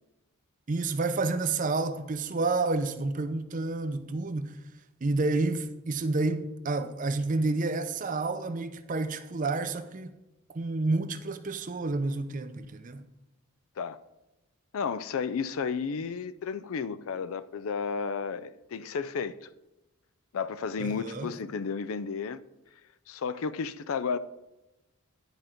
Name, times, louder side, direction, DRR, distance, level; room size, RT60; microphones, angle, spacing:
voice 1, 0.7-4.6 5.0-10.1 10.5-13.1 20.8-21.3, right 3 dB, 35° right, 0.5 m, -29 dB
voice 2, 14.7-19.3 20.3-22.4 23.1-24.2, left 5 dB, 70° left, 0.4 m, -32 dB
10.5 x 5.1 x 4.4 m
head